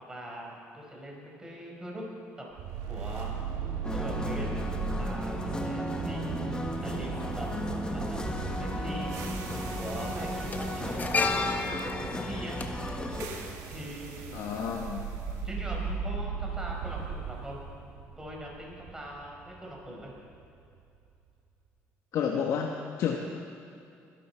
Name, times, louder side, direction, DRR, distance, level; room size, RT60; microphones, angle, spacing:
voice 1, 0.1-2.0 2.4-2.5 2.9-3.4 3.9-4.5 5.0-8.2 8.6-9.2 9.8-12.6 13.6-14.4 15.4-17.6 18.2-20.1, equal, 15° right, -2 dB, 4.7 m, -41 dB
sound 1, 2.6-20.7, right 5 dB, 80° right, 1.5 m, -37 dB
sound 2, 3.8-13.3, left 1 dB, 15° left, 1.4 m, -35 dB
sound 3, 8.0-8.1 9.3-9.6 9.9-14.2 14.4-14.6, left 4 dB, 30° left, 1.2 m, -33 dB
voice 2, 14.3-15.0 22.1-23.2, left 7 dB, 65° left, 1 dB, 1.1 m, -30 dB
22.0 x 12.0 x 4.5 m, 2.5 s
cardioid pair, 90°, 6 cm